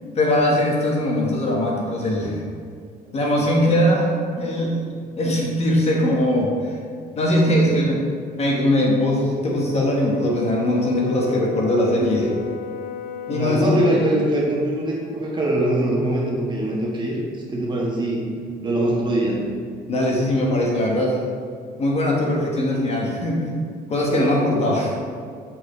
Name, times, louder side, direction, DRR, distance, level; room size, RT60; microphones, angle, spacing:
voice 1, 0.1-2.4 3.1-4.8 5.2-6.7 7.2-8.0 8.4-12.3 13.3-13.8 19.9-21.2 21.8-23.5 23.9-25.0, left 1 dB, 40° left, -2 dB, 1.2 m, -20 dB
Brass instrument, 9.5-13.8, left 9 dB, 55° left, 0.4 m, -34 dB
voice 2, 13.3-18.2 18.6-19.5, right 1 dB, 25° right, -3 dB, 1.3 m, -22 dB
7.5 x 4.3 x 3.2 m, 2.2 s
cardioid pair, 110°, 17 cm